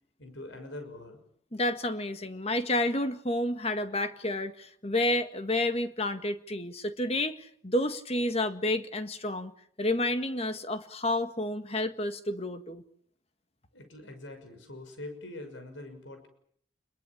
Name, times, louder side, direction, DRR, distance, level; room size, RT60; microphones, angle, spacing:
voice 1, 0.2-1.2 13.7-16.3, left 2 dB, 70° left, 7 dB, 6.2 m, -43 dB
voice 2, 1.5-9.5 9.8-12.8, left 1 dB, 30° left, 9 dB, 1.7 m, -30 dB
27.5 x 22.0 x 7.3 m, 0.65 s
head